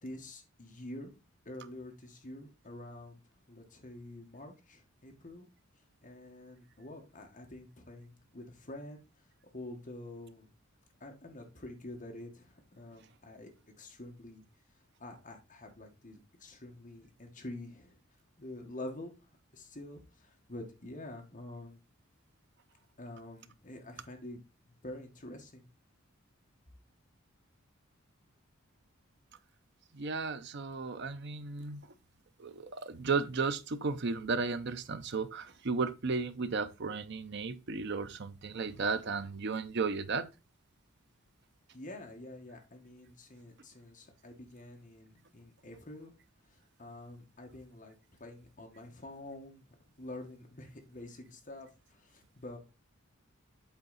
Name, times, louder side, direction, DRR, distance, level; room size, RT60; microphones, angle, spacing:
voice 1, 0.0-1.1 1.4-3.2 3.5-5.5 6.0-9.0 9.5-10.5 11.0-13.5 13.8-14.4 15.0-18.0 18.4-19.1 19.5-21.8 23.0-24.4 24.6-25.7 41.7-46.1 46.8-47.9 48.2-49.6 50.0-52.6, left 1 dB, 40° left, 1.6 m, -47 dB
voice 2, 29.9-31.8 32.4-40.3, right 4 dB, 55° right, 0.6 m, -34 dB
8.1 x 4.0 x 4.0 m
head